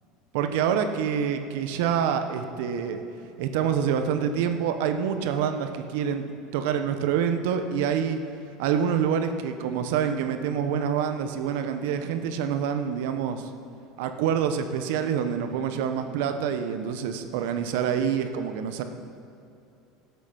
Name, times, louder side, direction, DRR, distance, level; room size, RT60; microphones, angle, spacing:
voice 1, 0.3-3.0 3.4-8.2 8.6-13.5 14.0-18.8, right 8 dB, 75° right, 8 dB, 1.1 m, -26 dB
15.0 x 8.2 x 5.9 m, 2.7 s
supercardioid pair, 125°, 0 cm